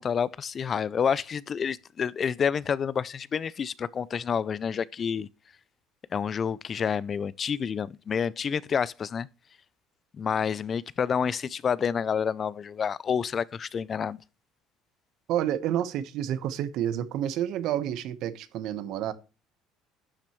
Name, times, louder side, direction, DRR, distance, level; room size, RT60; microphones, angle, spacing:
voice 1, 0.0-5.3 6.1-9.3 10.1-14.2, left 7 dB, 35° left, 0.4 m, -28 dB
voice 2, 15.3-19.1, right 11 dB, 65° right, 1.1 m, -29 dB
11.5 x 7.4 x 3.1 m
supercardioid pair, 100°, 0 cm